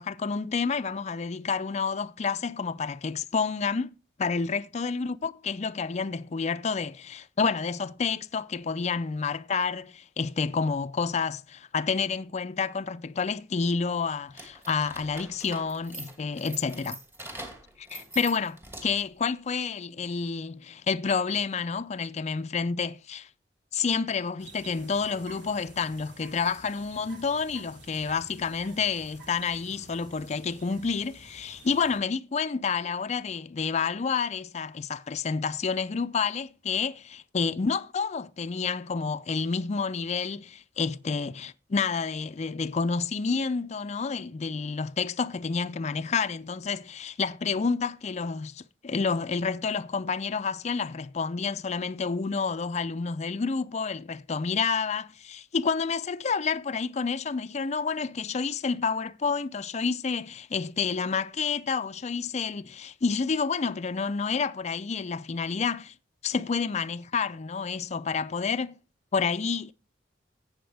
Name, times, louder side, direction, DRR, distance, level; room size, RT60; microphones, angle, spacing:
voice 1, 0.0-17.0 17.9-23.3 23.7-65.9 66.2-68.8 69.1-69.7, left 5 dB, 40° left, 0.4 m, -29 dB
sound 1, 14.3-19.1, right 2 dB, 15° right, 2.4 m, -43 dB
sound 2, 24.4-32.0, right 2 dB, 75° right, 3.4 m, -50 dB
14.0 x 8.7 x 3.4 m
head